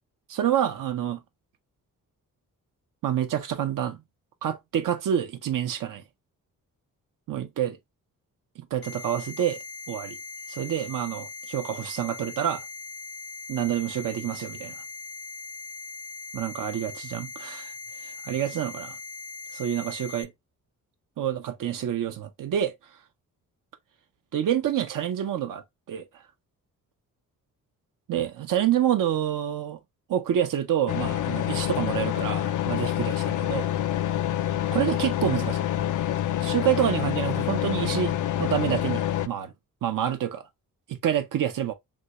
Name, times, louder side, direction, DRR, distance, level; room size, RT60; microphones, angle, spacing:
voice 1, 0.3-1.2 3.0-4.0 4.4-6.0 7.3-7.8 8.6-9.6 9.9-10.2 10.5-12.6 13.5-14.8 16.3-17.7 18.0-19.0 19.5-20.3 21.2-22.7 24.3-25.6 25.9-26.0 28.1-29.8 30.1-33.7 34.7-35.6 36.4-38.1 38.4-39.5 39.8-40.4 40.9-41.7, right 10 dB, 70° right, 0.6 m, -27 dB
sound 1, 8.8-20.2, left 3 dB, 85° left, 1.8 m, -40 dB
sound 2, 30.9-39.3, left 12 dB, 65° left, 0.5 m, -27 dB
3.5 x 2.7 x 2.8 m
cardioid pair, 75°, 34 cm